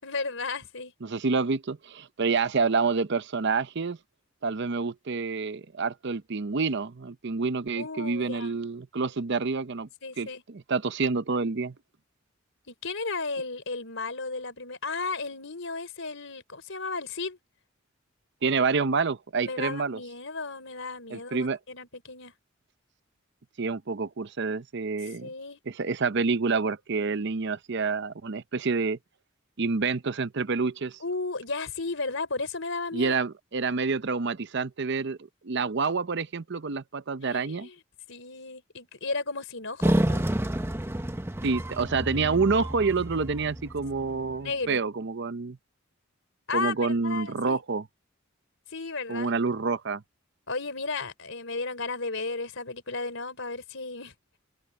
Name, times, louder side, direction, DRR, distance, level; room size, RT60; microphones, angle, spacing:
voice 1, 0.0-0.9 7.8-8.5 10.0-10.4 12.7-17.4 19.4-22.3 25.2-25.6 31.0-33.2 37.2-37.8 38.1-40.2 44.4-44.8 46.5-46.7 47.0-47.6 48.7-49.3 50.5-54.1, left 3 dB, 65° left, 4.8 m, -34 dB
voice 2, 1.0-4.0 4.4-9.9 10.2-11.7 18.4-20.0 21.1-21.6 23.6-25.3 25.7-29.0 29.6-31.0 32.9-35.2 35.4-37.7 41.4-45.6 46.5-47.8 49.1-50.0, right 4 dB, 60° right, 0.7 m, -28 dB
sound 1, 39.8-44.4, right 1 dB, 10° right, 0.8 m, -29 dB
open air
head